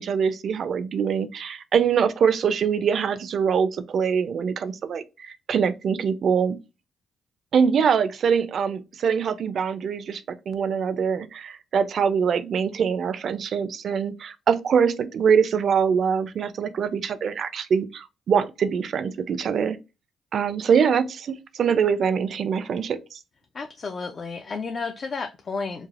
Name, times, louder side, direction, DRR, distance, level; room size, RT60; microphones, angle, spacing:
voice 1, 0.0-6.6 7.5-19.8 20.3-23.2, right 7 dB, 60° right, 0.3 m, -23 dB
voice 2, 23.5-25.9, left 4 dB, 40° left, 0.3 m, -32 dB
3.2 x 2.1 x 2.4 m
cardioid pair, 90°, 0 cm